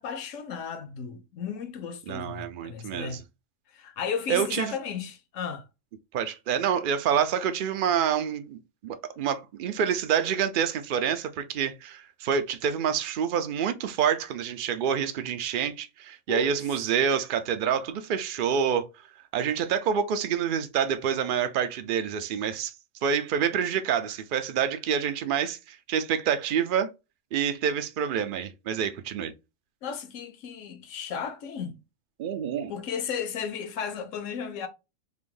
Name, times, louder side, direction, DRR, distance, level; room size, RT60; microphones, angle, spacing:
voice 1, 0.0-3.2 3.7-5.7 16.3-16.5 29.8-31.8 32.7-34.7, left 7 dB, 70° left, 1.0 m, -34 dB
voice 2, 2.1-3.2 4.3-4.7 6.1-18.9 19.3-22.7 23.0-26.9 27.3-29.3 32.2-32.7, right 8 dB, 65° right, 0.5 m, -27 dB
3.4 x 2.5 x 3.7 m
omnidirectional pair, 1.4 m